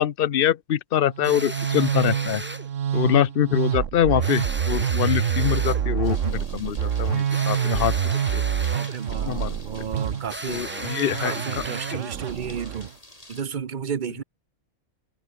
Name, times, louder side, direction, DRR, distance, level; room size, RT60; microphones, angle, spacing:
voice 1, 0.0-2.4 2.9-7.9 8.3-8.4 9.3-9.5 10.5-11.6, left 10 dB, 50° left, 0.8 m, -24 dB
Musical instrument, 1.1-12.9, right 9 dB, 65° right, 1.3 m, -27 dB
sound 1, 1.2-2.7 4.2-5.9 7.3-9.0 10.3-12.1, right 1 dB, 10° right, 1.8 m, -36 dB
sound 2, 6.0-13.4, left 1 dB, 25° left, 4.7 m, -48 dB
voice 2, 8.7-10.7 11.2-12.9 13.3-14.2, right 7 dB, 40° right, 1.0 m, -32 dB
omnidirectional pair, 1.5 m